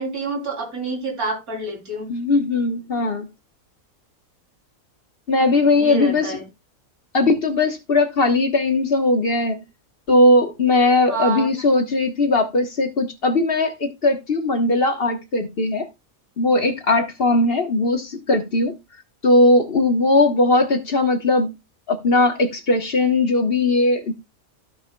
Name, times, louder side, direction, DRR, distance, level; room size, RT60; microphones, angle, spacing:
voice 1, 0.0-2.1 5.7-6.4 11.1-11.5, right 3 dB, 90° right, 3.7 m, -28 dB
voice 2, 2.1-3.3 5.3-6.3 7.1-9.6 10.1-15.9 16.4-18.8 19.2-21.5 21.9-24.1, left 2 dB, 45° left, 1.3 m, -19 dB
15.5 x 5.6 x 2.2 m
omnidirectional pair, 1.5 m